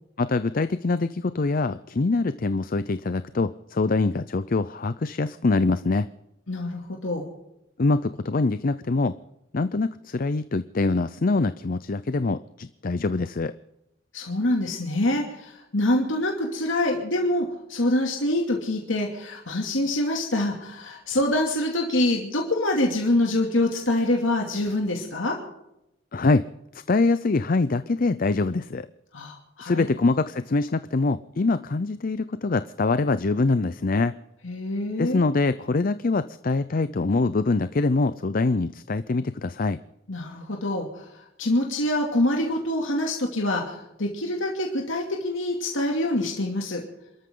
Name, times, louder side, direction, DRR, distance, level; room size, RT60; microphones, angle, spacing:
voice 1, 0.2-6.1 7.8-9.1 9.5-13.5 26.1-26.4 26.9-28.9 29.6-34.1 35.0-39.8, left 3 dB, 45° left, 13 dB, 0.5 m, -24 dB
voice 2, 6.5-7.3 14.1-25.4 29.1-29.9 34.4-35.2 40.1-41.1 41.4-46.8, left 1 dB, 80° left, 0 dB, 2.7 m, -25 dB
28.0 x 13.5 x 3.9 m, 0.85 s
head